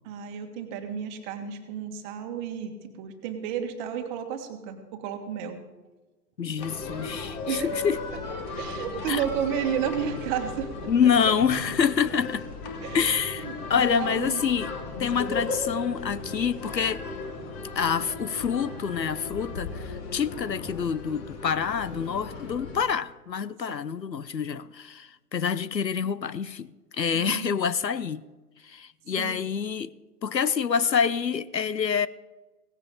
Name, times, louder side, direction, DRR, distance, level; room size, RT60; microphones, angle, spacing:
voice 1, 0.0-5.6 7.5-7.7 8.1-8.2 8.5-10.9 11.3-11.4 12.8-14.4 15.1-15.3 23.7-23.8 27.1-27.6 29.2-29.4, right 8 dB, 30° right, 1.7 m, -32 dB
voice 2, 6.4-8.0 9.1-9.2 10.9-12.5 12.9-17.1 17.7-28.2 28.6-29.9 30.2-32.1, left 7 dB, 90° left, 0.8 m, -27 dB
sound 1, 6.6-22.8, left 3 dB, 30° left, 2.3 m, -36 dB
17.5 x 16.0 x 3.9 m
figure-of-eight pair, 125°, 49 cm